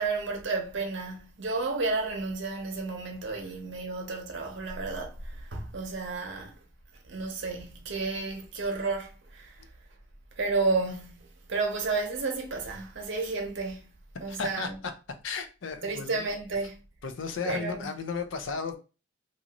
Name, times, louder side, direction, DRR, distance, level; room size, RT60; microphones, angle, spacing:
voice 1, 0.0-6.6 7.1-9.5 10.4-13.8 14.2-14.7 15.8-16.8 17.5-17.8, right 3 dB, 65° right, 0.7 m, -32 dB
voice 2, 14.1-14.9 15.2-16.3 17.0-18.8, left 5 dB, 70° left, 0.5 m, -34 dB
2.7 x 2.5 x 2.9 m
head